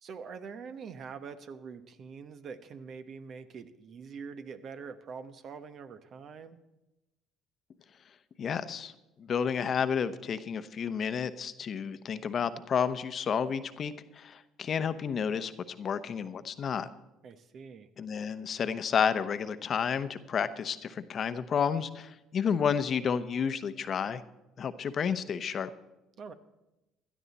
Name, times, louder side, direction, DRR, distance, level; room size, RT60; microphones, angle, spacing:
voice 1, 0.0-6.6 17.2-17.9 26.2-26.3, right 5 dB, 55° right, 10 dB, 1.1 m, -44 dB
voice 2, 8.4-8.9 9.2-15.5 15.8-16.9 18.0-24.2 24.6-25.7, left 7 dB, 50° left, 12 dB, 0.9 m, -31 dB
16.5 x 12.5 x 4.2 m, 0.97 s
hypercardioid pair, 60°, 0 cm